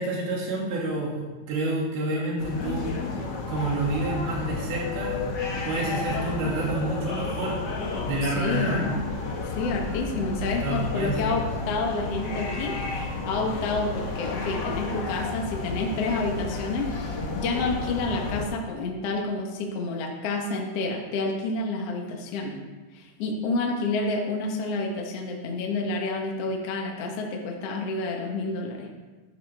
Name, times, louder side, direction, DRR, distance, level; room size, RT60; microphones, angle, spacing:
voice 1, 0.0-2.9 3.5-5.3 5.6-7.6 8.1-8.8 10.6-11.2, right 2 dB, 70° right, -3 dB, 4.4 m, -29 dB
sound 1, 2.4-18.4, left 3 dB, 75° left, 1.0 m, -32 dB
voice 2, 8.2-9.0 9.6-22.6 22.9-28.9, left 3 dB, 55° left, 1 dB, 1.8 m, -29 dB
14.0 x 11.5 x 3.6 m, 1.3 s
omnidirectional pair, 4.5 m